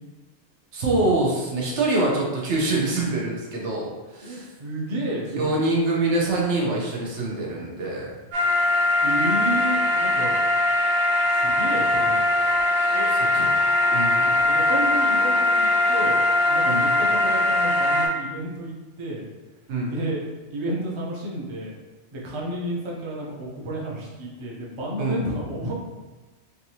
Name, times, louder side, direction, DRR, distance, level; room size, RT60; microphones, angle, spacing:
voice 1, 0.7-4.5 5.3-8.1 12.8-12.9 13.3-13.4 13.9-14.4 16.6-16.9 19.7-19.9 25.0-25.3, right 2 dB, 85° right, -3 dB, 1.1 m, -25 dB
voice 2, 4.2-5.6 9.0-10.4 11.2-12.2 12.9-13.7 14.4-19.3 19.8-20.2 20.5-21.7 22.1-25.7, right 1 dB, 30° right, -4 dB, 0.6 m, -31 dB
sound 1, 8.3-18.1, left 2 dB, 60° right, 1.0 m, -21 dB
3.6 x 2.7 x 2.8 m, 1.2 s
omnidirectional pair, 1.2 m